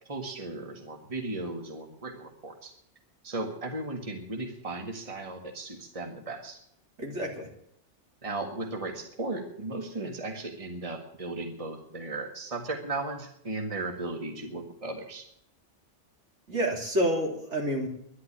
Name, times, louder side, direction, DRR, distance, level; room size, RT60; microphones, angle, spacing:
voice 1, 0.0-2.7 3.2-6.6 8.2-15.2, right 2 dB, 30° right, 3 dB, 1.8 m, -36 dB
voice 2, 7.0-7.5 16.5-17.9, equal, 70° right, 0 dB, 3.6 m, -28 dB
11.5 x 11.0 x 10.0 m, 0.71 s
omnidirectional pair, 1.2 m